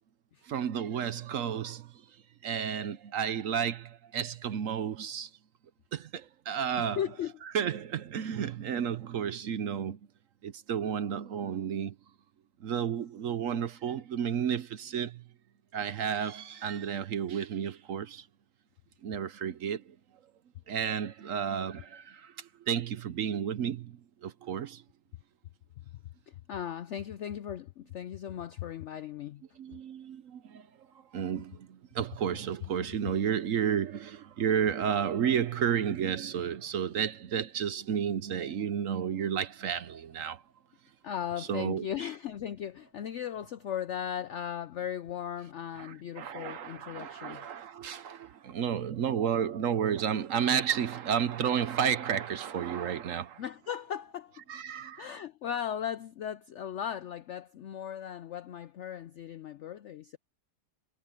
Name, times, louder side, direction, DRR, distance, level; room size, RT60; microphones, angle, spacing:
voice 1, 0.4-1.9 2.4-5.3 5.9-7.0 7.5-10.0 10.4-11.9 12.6-15.2 15.7-18.3 19.0-19.8 20.7-24.8 29.6-30.7 31.1-40.4 41.4-41.9 45.8-53.4 54.5-55.1, right 8 dB, 60° right, 1.0 m, -32 dB
voice 2, 6.8-7.3 8.8-8.9 26.3-29.4 29.7-29.8 41.0-47.5 53.4-54.4 55.0-60.2, left 9 dB, 75° left, 0.6 m, -37 dB
omnidirectional pair, 1.8 m